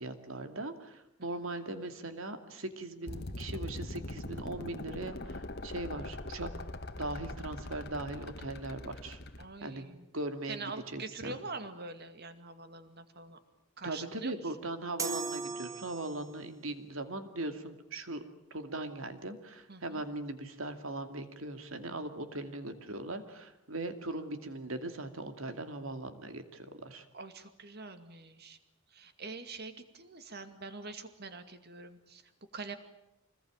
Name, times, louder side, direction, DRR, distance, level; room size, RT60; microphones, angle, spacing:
voice 1, 0.0-6.5 7.0-9.2 9.6-9.8 10.1-10.6 10.9-11.4 13.8-18.2 18.5-27.1, right 2 dB, 70° right, 8 dB, 2.5 m, -39 dB
sound 1, 3.1-9.4, left 1 dB, 50° left, 1.4 m, -42 dB
voice 2, 9.4-10.0 10.5-13.4 13.8-14.4 19.7-20.0 27.1-28.6 28.9-32.8, right 3 dB, 50° right, 9 dB, 2.3 m, -45 dB
sound 2, 15.0-16.5, right 4 dB, 15° right, 1.1 m, -38 dB
25.5 x 20.5 x 9.0 m, 0.88 s
head